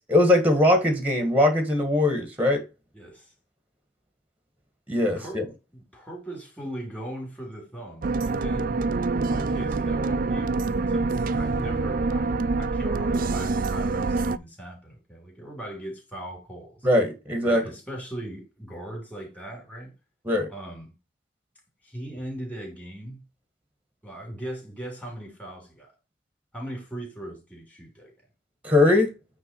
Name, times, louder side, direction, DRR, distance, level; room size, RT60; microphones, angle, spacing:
voice 1, 0.1-2.6 4.9-5.5 16.8-17.6 20.2-20.5 28.6-29.1, left 1 dB, 10° right, 1.5 m, -21 dB
voice 2, 2.9-3.3 5.2-8.8 9.3-16.9 17.4-19.9 20.5-20.9 21.8-23.2 24.0-25.9 26.5-28.1, right 1 dB, 5° left, 3.3 m, -39 dB
sound 1, 8.0-14.4, right 3 dB, 45° right, 0.4 m, -26 dB
9.0 x 3.4 x 4.6 m
head